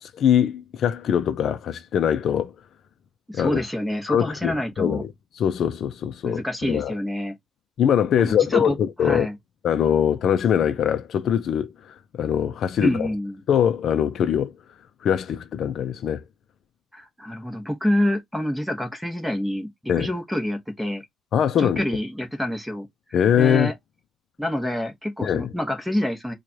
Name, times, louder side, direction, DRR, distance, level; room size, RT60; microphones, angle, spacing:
voice 1, 0.0-2.5 3.3-3.6 4.1-5.1 5.4-6.9 7.8-9.3 9.6-13.1 13.5-14.5 15.0-16.2 19.9-20.1 21.3-21.8 23.1-23.7 25.2-25.5, left 9 dB, 60° left, 0.5 m, -22 dB
voice 2, 3.3-5.0 6.2-7.4 8.2-9.3 12.8-13.4 16.9-21.0 21.6-22.9 23.4-23.7 24.4-26.3, left 1 dB, ahead, 1.0 m, -27 dB
4.7 x 2.3 x 2.8 m
cardioid pair, 145°, 0 cm